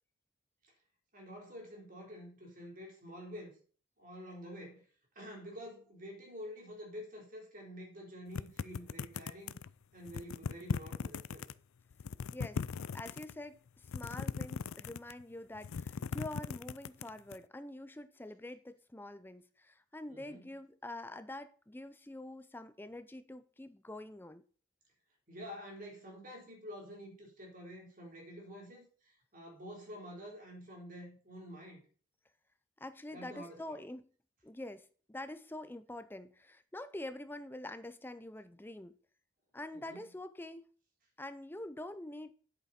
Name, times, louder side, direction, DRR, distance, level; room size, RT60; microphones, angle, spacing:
voice 1, 1.1-3.6 4.0-4.8 5.2-9.6 9.9-11.5 20.1-20.5 25.3-28.9 29.3-31.8 33.1-33.8 39.7-40.0, equal, 40° right, 3.8 m, -48 dB
sound 1, 8.3-9.7 10.1-11.5 11.9-13.3 13.8-15.2 15.5-17.4, left 6 dB, 85° left, 0.4 m, -39 dB
voice 2, 12.3-12.6 12.9-24.4 32.8-34.1 34.4-39.0 39.5-40.7 41.2-42.3, left 1 dB, 10° left, 0.5 m, -46 dB
9.7 x 8.3 x 4.3 m
head